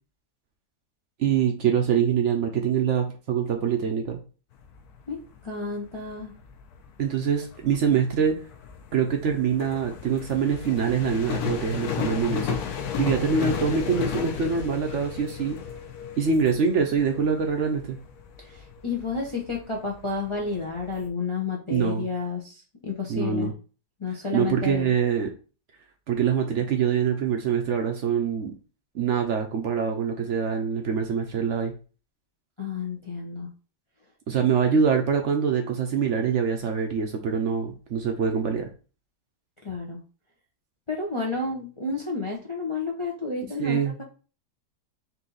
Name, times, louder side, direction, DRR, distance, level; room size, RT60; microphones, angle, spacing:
voice 1, 1.2-4.2 7.0-8.4 8.9-15.6 16.2-18.0 21.7-22.1 23.1-23.5 24.3-25.3 26.1-28.5 28.9-31.7 34.3-38.7 43.6-44.0, right 6 dB, 65° right, 4 dB, 0.7 m, -24 dB
sound 1, 4.5-21.1, left 8 dB, 70° left, 1.2 m, -35 dB
voice 2, 5.1-6.3 18.4-23.5 24.0-24.9 32.6-33.5 39.6-40.0 40.9-44.0, left 4 dB, 45° left, -2 dB, 0.3 m, -31 dB
4.2 x 2.7 x 3.9 m, 0.35 s
omnidirectional pair, 1.9 m